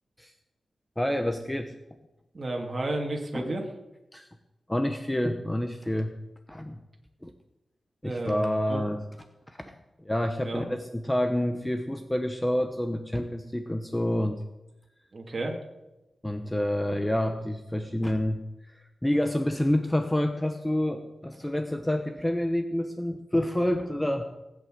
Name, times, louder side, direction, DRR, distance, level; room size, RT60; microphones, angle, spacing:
voice 1, 1.0-1.7 3.3-3.5 4.1-4.3 4.7-6.1 6.5-6.8 7.2-7.3 8.0-9.0 9.5-9.7 10.0-14.4 16.2-24.2, left 1 dB, 10° left, 7 dB, 0.9 m, -28 dB
voice 2, 2.3-3.7 8.0-8.8 10.4-10.7 15.1-15.6, right 2 dB, 35° right, 0 dB, 2.4 m, -32 dB
19.0 x 8.6 x 7.6 m, 1.0 s
wide cardioid pair, 135°, 0 cm